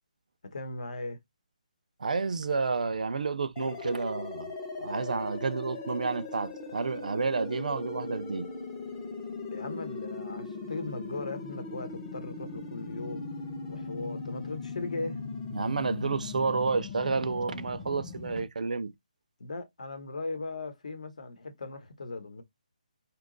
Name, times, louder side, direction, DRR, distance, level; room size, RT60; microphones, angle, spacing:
voice 1, 0.4-1.2 9.5-13.3 13.7-15.2 19.4-22.4, left 3 dB, 60° left, 0.9 m, -38 dB
voice 2, 2.0-4.5 4.8-8.5 15.5-18.9, right 4 dB, 70° right, 0.4 m, -30 dB
sound 1, 3.6-18.5, left 4 dB, 15° left, 0.5 m, -39 dB
2.8 x 2.3 x 3.8 m
hypercardioid pair, 175°, 4 cm